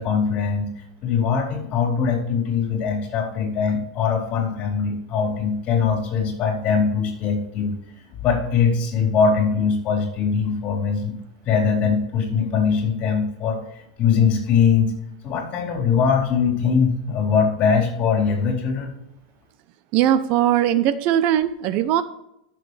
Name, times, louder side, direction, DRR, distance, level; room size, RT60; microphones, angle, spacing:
voice 1, 0.0-11.2 11.4-14.9 15.2-18.9, left 6 dB, 40° left, 0 dB, 4.1 m, -22 dB
voice 2, 19.9-22.0, right 11 dB, 50° right, 13 dB, 0.7 m, -19 dB
14.0 x 6.8 x 3.3 m, 0.83 s
supercardioid pair, 130°, 3 cm